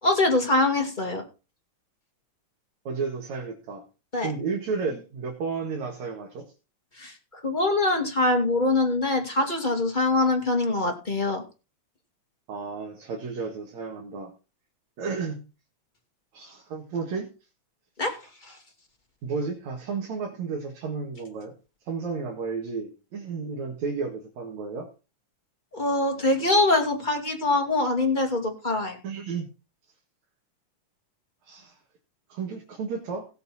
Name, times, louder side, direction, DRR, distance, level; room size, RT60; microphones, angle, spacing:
voice 1, 0.0-1.2 4.1-4.3 7.0-11.4 18.0-18.2 18.4-18.5 25.7-29.0, left 2 dB, 15° left, 2 dB, 2.0 m, -24 dB
voice 2, 2.8-3.8 4.2-6.5 12.5-14.3 15.0-15.5 16.3-17.3 19.2-21.5 21.9-24.9 29.0-29.5 31.5-31.7 32.3-33.3, right 5 dB, 70° right, 0 dB, 3.1 m, -32 dB
17.5 x 6.7 x 4.3 m, 0.32 s
omnidirectional pair, 3.3 m